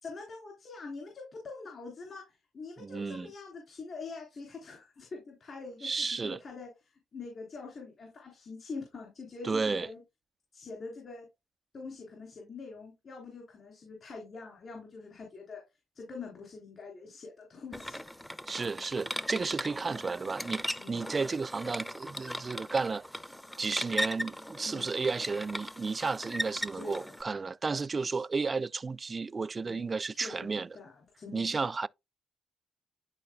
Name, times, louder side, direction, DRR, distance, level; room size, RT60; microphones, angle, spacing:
voice 1, 0.0-10.0 10.5-11.2 11.7-15.6 15.9-18.0 20.8-21.1 24.6-24.9 26.7-27.2 28.0-28.2 29.6-31.6, left 4 dB, 50° left, 3.4 m, -45 dB
voice 2, 2.8-3.3 5.8-6.4 9.4-9.9 18.5-23.1 23.6-30.7 31.3-31.9, right 4 dB, 35° right, 0.3 m, -33 dB
sound 1, 17.7-27.2, equal, 5° left, 0.6 m, -38 dB
12.0 x 4.1 x 2.3 m
cardioid pair, 75°, 0 cm